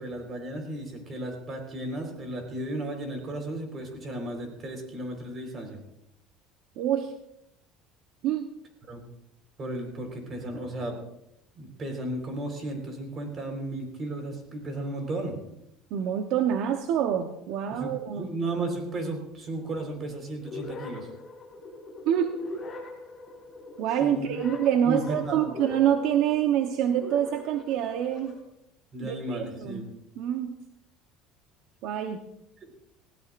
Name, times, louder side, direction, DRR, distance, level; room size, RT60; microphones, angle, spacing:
voice 1, 0.0-5.8 8.9-9.0 9.6-11.0 11.5-15.4 17.7-21.1 24.0-24.3 24.8-25.5 28.9-29.8, right 1 dB, 30° right, 3 dB, 4.1 m, -34 dB
voice 2, 6.8-7.1 8.2-8.5 15.9-18.3 22.1-22.3 23.8-28.4 29.0-29.8 30.2-30.6 31.8-32.2, right 10 dB, 65° right, 6 dB, 0.9 m, -26 dB
sound 1, 20.4-28.4, left 2 dB, 15° left, 7.1 m, -41 dB
19.5 x 17.0 x 2.6 m, 0.82 s
cardioid pair, 130°, 0 cm